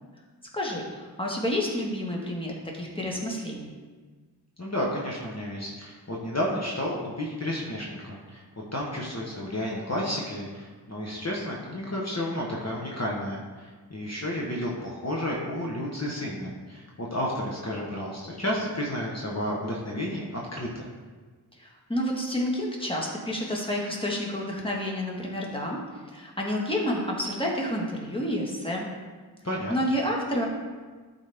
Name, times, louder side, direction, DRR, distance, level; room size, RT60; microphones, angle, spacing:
voice 1, 0.5-3.7 21.6-28.9 29.7-30.4, equal, 15° left, -2 dB, 1.5 m, -29 dB
voice 2, 4.6-8.4 8.7-20.9 29.4-29.7, left 1 dB, 40° left, -3 dB, 1.2 m, -31 dB
12.0 x 4.1 x 3.5 m, 1.4 s
wide cardioid pair, 45°, 41 cm